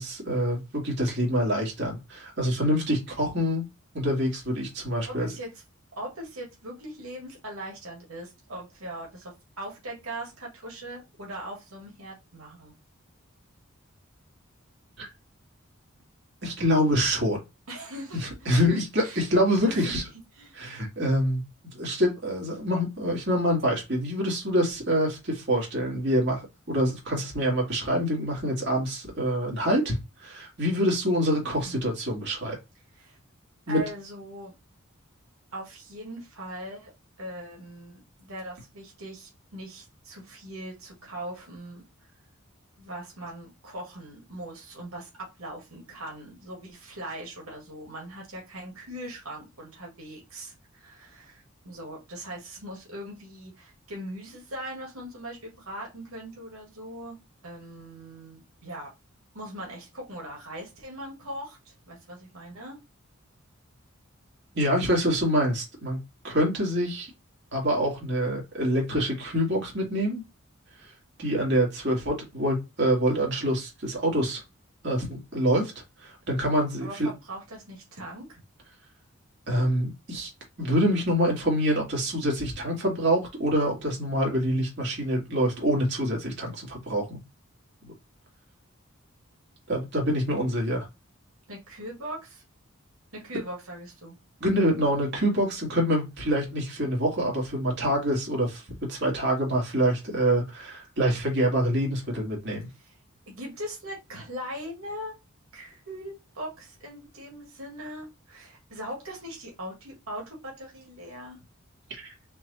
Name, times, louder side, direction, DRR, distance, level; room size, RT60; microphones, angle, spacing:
voice 1, 0.0-3.6 3.9-5.3 15.0-15.1 16.4-17.4 18.2-20.0 20.5-21.4 21.7-32.6 33.7-33.8 64.5-66.0 66.2-67.1 67.5-70.2 70.8-70.9 71.2-74.4 74.8-75.7 76.0-77.1 79.5-80.3 80.6-87.2 87.8-87.9 89.7-90.9 94.4-98.6 98.9-102.7 112.0-112.1, equal, 55° right, 2.1 m, -26 dB
voice 2, 5.0-5.6 6.0-12.7 17.7-18.5 19.0-19.3 19.6-20.1 20.3-20.6 31.6-31.9 32.9-33.2 33.7-34.5 35.5-36.9 37.2-41.8 42.8-57.2 57.4-58.9 59.3-62.8 76.8-78.4 91.5-92.4 93.1-94.1 102.7-102.9 103.3-105.2 105.5-111.4, right 1 dB, 85° right, 1.8 m, -40 dB
4.6 x 2.7 x 4.1 m
head